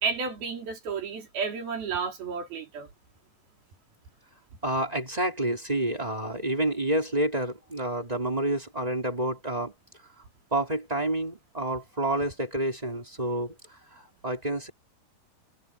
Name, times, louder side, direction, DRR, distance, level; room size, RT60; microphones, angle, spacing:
voice 1, 0.0-2.9, right 5 dB, 85° right, 6.1 m, -31 dB
voice 2, 4.6-9.7 10.5-14.7, right 1 dB, 10° right, 3.3 m, -29 dB
omnidirectional pair, 4.2 m